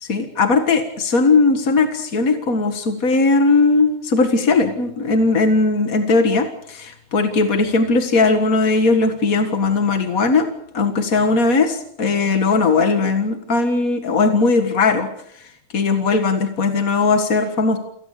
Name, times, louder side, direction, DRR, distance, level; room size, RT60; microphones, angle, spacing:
voice 1, 0.0-10.5 10.7-15.1 15.3-15.4 15.7-17.8, left 3 dB, 50° left, 7 dB, 1.0 m, -18 dB
29.0 x 18.0 x 6.7 m, 0.70 s
omnidirectional pair, 4.2 m